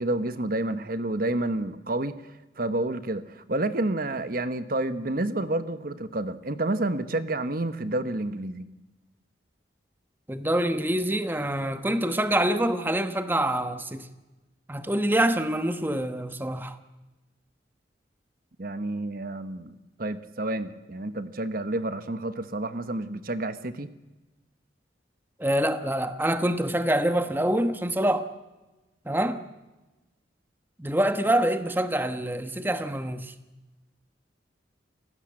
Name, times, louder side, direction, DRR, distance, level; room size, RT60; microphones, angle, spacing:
voice 1, 0.0-2.2 2.6-8.7 18.6-23.9, right 2 dB, 50° right, 1.1 m, -29 dB
voice 2, 10.3-14.1 14.7-16.8 25.4-28.3 29.1-29.4 30.8-33.3, right 1 dB, 10° right, 1.1 m, -25 dB
30.0 x 16.5 x 7.6 m
head